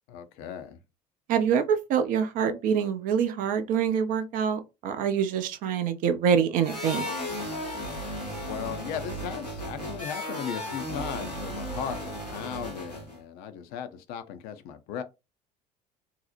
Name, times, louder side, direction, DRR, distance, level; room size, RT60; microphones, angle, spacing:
voice 1, 0.1-0.8 8.4-15.0, left 8 dB, 50° left, 0.5 m, -37 dB
voice 2, 1.3-7.1, right 7 dB, 45° right, 0.5 m, -25 dB
sound 1, 6.6-13.2, left 1 dB, 90° left, 0.8 m, -35 dB
2.7 x 2.0 x 2.5 m
figure-of-eight pair, 65°, 20 cm